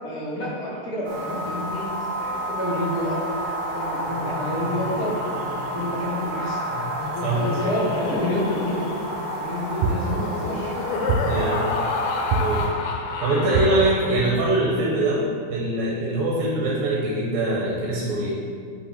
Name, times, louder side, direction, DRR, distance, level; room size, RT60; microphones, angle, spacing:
voice 1, 0.0-1.9 2.2-3.2 3.7-5.1 5.7-6.6 7.3-8.8 9.3-11.1, left 1 dB, 40° left, -8 dB, 2.5 m, -29 dB
sound 1, 1.0-12.7, right 1 dB, 45° right, 2.0 m, -30 dB
Laughter, 4.1-14.6, left 4 dB, 80° left, 2.4 m, -31 dB
voice 2, 7.2-7.7 11.3-11.7 12.3-12.6 13.2-15.2 15.5-18.4, right 2 dB, 75° right, -4 dB, 2.5 m, -23 dB
sound 2, 9.8-10.5 11.1-11.7 12.3-13.0 13.5-14.2, right 4 dB, 90° right, 2.5 m, -25 dB
5.8 x 5.7 x 5.9 m, 2.2 s
omnidirectional pair, 4.5 m